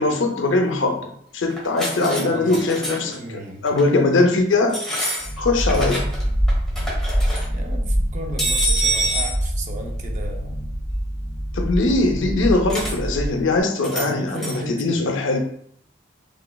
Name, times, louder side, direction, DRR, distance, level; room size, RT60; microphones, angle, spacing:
voice 1, 0.0-3.2 3.6-4.8 5.4-6.1 11.5-15.4, left 2 dB, 75° left, 4 dB, 0.5 m, -21 dB
sound 1, 1.5-2.2 2.5-3.1 3.7-3.9 4.7-6.2 6.5-7.4 8.4-9.4 12.7-12.9 13.8-14.1 14.4-14.6, right 1 dB, ahead, 1.0 m, -26 dB
voice 2, 1.9-3.7 7.5-10.6 13.8-15.1, right 1 dB, 40° right, 3 dB, 0.4 m, -35 dB
sound 2, 5.2-13.6, equal, 20° right, 1.4 m, -25 dB
3.2 x 3.0 x 2.2 m, 0.67 s
head